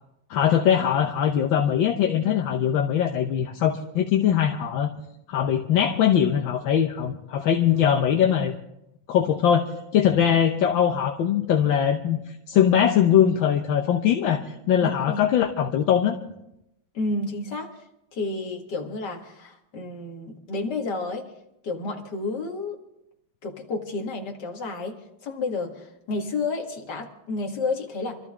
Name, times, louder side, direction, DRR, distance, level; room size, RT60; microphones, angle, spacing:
voice 1, 0.3-4.9 5.3-8.6 9.1-12.2 12.5-16.2, left 9 dB, 75° left, 3 dB, 1.6 m, -21 dB
voice 2, 14.8-15.2 16.9-17.7 18.1-21.3 21.6-22.8 23.4-28.2, left 3 dB, 55° left, 1 dB, 2.4 m, -31 dB
26.0 x 13.5 x 3.6 m, 0.83 s
omnidirectional pair, 2.2 m